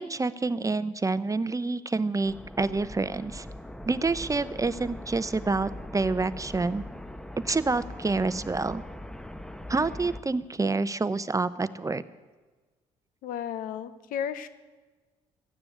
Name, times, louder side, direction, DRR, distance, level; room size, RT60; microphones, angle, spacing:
voice 1, 0.0-3.5 3.8-6.8 7.4-8.8 9.7-12.0, right 3 dB, 20° right, 15 dB, 0.7 m, -28 dB
sound 1, 2.2-10.2, left 1 dB, 5° left, 1.0 m, -41 dB
voice 2, 13.2-14.5, left 9 dB, 75° left, 13 dB, 0.9 m, -33 dB
13.5 x 9.7 x 8.6 m, 1.3 s
hypercardioid pair, 55°, 15 cm